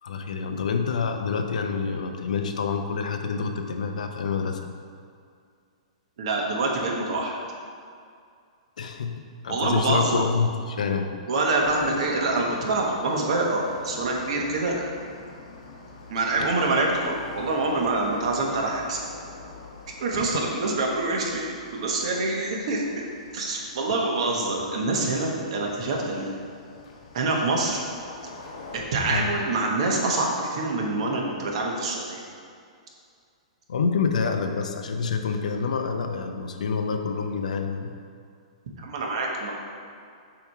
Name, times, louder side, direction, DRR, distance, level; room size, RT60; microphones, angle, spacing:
voice 1, 0.0-4.7 8.8-11.1 29.1-29.3 33.7-37.9, left 5 dB, 85° left, 5 dB, 0.6 m, -27 dB
voice 2, 6.2-7.3 9.5-10.2 11.3-14.8 16.1-19.1 20.0-22.8 23.3-26.3 27.1-27.8 28.7-32.2 38.8-39.5, right 2 dB, 55° right, -1 dB, 1.1 m, -26 dB
sound 1, 11.6-28.8, left 3 dB, 65° left, 0.9 m, -44 dB
7.1 x 3.0 x 4.6 m, 2.3 s
hypercardioid pair, 160°, 4 cm